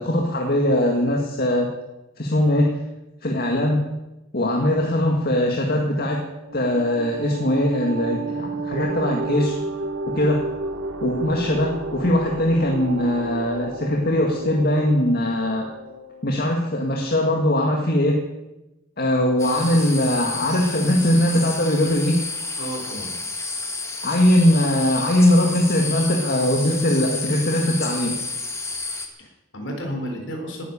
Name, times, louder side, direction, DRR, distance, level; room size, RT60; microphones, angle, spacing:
voice 1, 0.0-1.7 2.2-2.8 3.2-3.9 4.3-6.2 6.5-9.6 10.1-10.5 11.0-15.7 16.2-18.2 19.0-22.2 24.0-28.1, left 1 dB, 50° left, 1 dB, 2.0 m, -21 dB
sound 1, 6.2-16.5, right 2 dB, 85° right, 1.8 m, -32 dB
sound 2, 19.4-29.1, left 3 dB, 15° left, 1.9 m, -31 dB
voice 2, 22.6-23.1 29.2-30.6, equal, 65° left, 2 dB, 4.4 m, -32 dB
19.0 x 10.0 x 7.0 m, 0.99 s
head